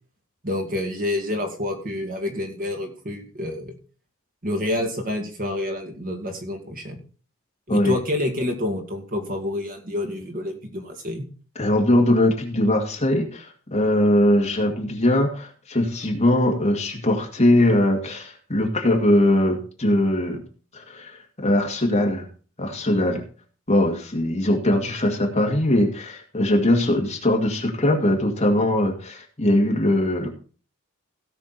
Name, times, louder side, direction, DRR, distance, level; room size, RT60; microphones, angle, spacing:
voice 1, 0.4-3.7 4.4-7.0 7.7-11.2, left 1 dB, 40° right, 3 dB, 2.3 m, -28 dB
voice 2, 11.6-20.4 20.7-21.2 21.4-22.2 22.6-23.2 23.7-30.3, left 1 dB, 30° left, 1 dB, 2.3 m, -21 dB
17.0 x 6.2 x 4.3 m, 0.38 s
head